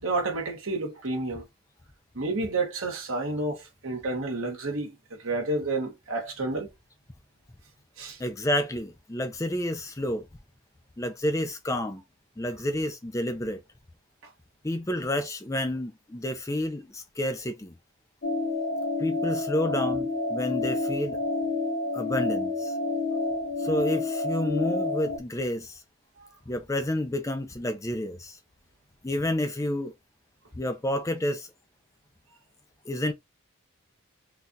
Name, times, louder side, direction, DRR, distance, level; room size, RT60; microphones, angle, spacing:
voice 1, 0.0-1.4 2.1-6.7 8.0-8.2, right 2 dB, 75° right, 1.4 m, -30 dB
voice 2, 8.2-10.3 11.0-12.0 12.4-13.6 14.6-17.8 19.0-21.2 21.9-22.7 23.6-25.8 26.5-28.4 29.0-29.9 30.5-31.5 32.9-33.1, left 1 dB, 15° left, 0.4 m, -30 dB
sound 1, 18.2-25.2, left 3 dB, 45° left, 0.8 m, -29 dB
3.9 x 2.4 x 2.7 m
head